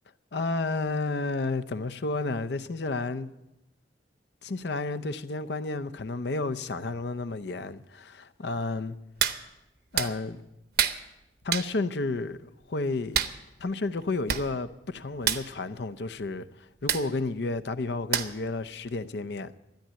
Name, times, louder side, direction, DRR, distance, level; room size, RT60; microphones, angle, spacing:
voice 1, 0.3-3.3 4.4-9.0 9.9-10.4 11.4-13.2 13.6-19.6, left 3 dB, 65° left, 0.6 m, -31 dB
Hands, 9.2-9.4 10.0-10.1 10.8-11.0 11.5-11.7 13.1-13.4 14.0-14.1 14.3-14.5 14.7-14.9 15.2-15.4 16.9-17.1 18.1-18.5 18.9-19.0, right 9 dB, 55° right, 0.8 m, -26 dB
13.0 x 10.5 x 7.6 m
head